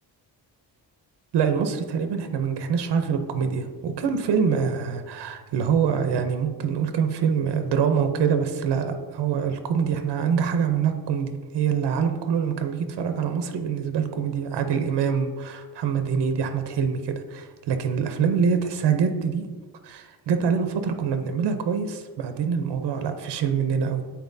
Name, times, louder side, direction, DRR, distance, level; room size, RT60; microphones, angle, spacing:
voice 1, 1.3-19.5 19.8-24.0, right 6 dB, 85° right, 7 dB, 0.7 m, -25 dB
9.2 x 4.3 x 2.6 m, 1.4 s
wide cardioid pair, 145°, 40 cm